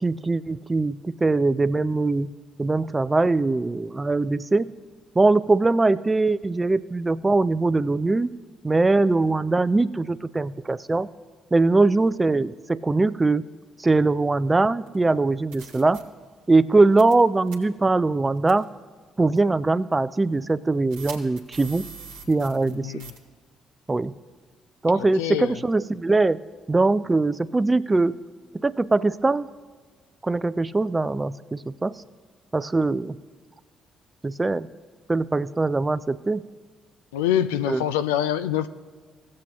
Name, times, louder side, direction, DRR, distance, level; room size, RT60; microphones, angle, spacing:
voice 1, 0.0-4.7 5.2-8.3 8.6-11.1 11.5-13.4 13.8-16.0 16.5-18.7 19.2-21.9 22.3-23.0 23.9-24.1 24.8-26.4 26.7-28.2 28.6-29.5 30.2-32.0 32.5-33.2 34.2-34.7 35.1-36.4 37.7-37.8, right 3 dB, 25° right, 15 dB, 0.4 m, -22 dB
sound 1, 14.9-15.0 15.5-16.0 17.0-17.2 17.5-17.6 18.5-18.6 19.4-19.5 20.9-22.7 23.0-23.2, right 6 dB, 75° right, 1.1 m, -41 dB
voice 2, 22.7-23.1 24.9-25.6 37.1-38.7, left 10 dB, 80° left, 11 dB, 0.4 m, -25 dB
17.0 x 7.5 x 2.9 m, 1.5 s
figure-of-eight pair, 45°, 0 cm